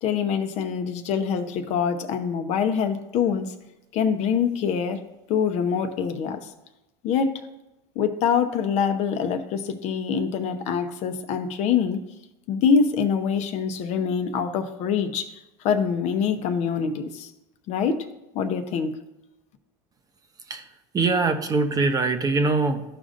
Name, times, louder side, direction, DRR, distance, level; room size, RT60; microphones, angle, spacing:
voice 1, 0.0-3.5 3.9-5.0 5.3-6.5 7.0-7.4 8.0-12.0 12.5-15.4 15.6-17.3 17.7-18.0 18.3-18.9, left 6 dB, 50° left, 7 dB, 0.8 m, -24 dB
voice 2, 20.9-22.8, right 3 dB, 25° right, 7 dB, 0.9 m, -22 dB
14.0 x 5.0 x 2.5 m, 0.97 s
supercardioid pair, 115°, 14 cm